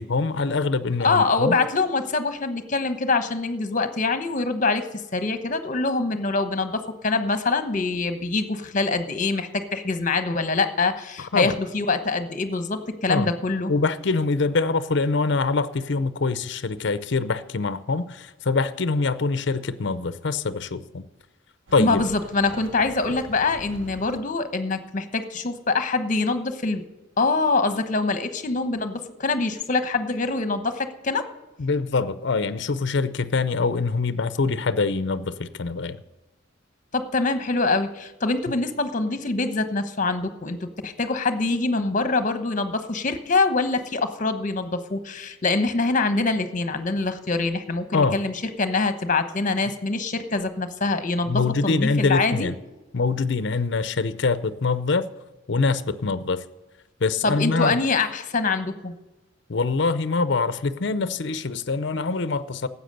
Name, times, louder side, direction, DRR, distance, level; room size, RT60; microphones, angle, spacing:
voice 1, 0.0-1.6 11.2-11.6 13.1-13.3 13.7-21.0 21.7-22.0 31.6-36.0 47.9-48.2 51.3-52.6 52.9-55.1 55.5-56.4 57.0-57.8 59.5-62.7, left 4 dB, 65° left, 14 dB, 0.6 m, -24 dB
voice 2, 1.0-13.7 21.8-26.8 27.2-31.3 36.9-40.6 40.8-52.5 57.2-58.9, left 3 dB, 40° left, 10 dB, 1.1 m, -24 dB
sound 1, 21.7-24.2, right 2 dB, 75° right, 0.9 m, -43 dB
13.0 x 8.2 x 6.6 m, 1.1 s
head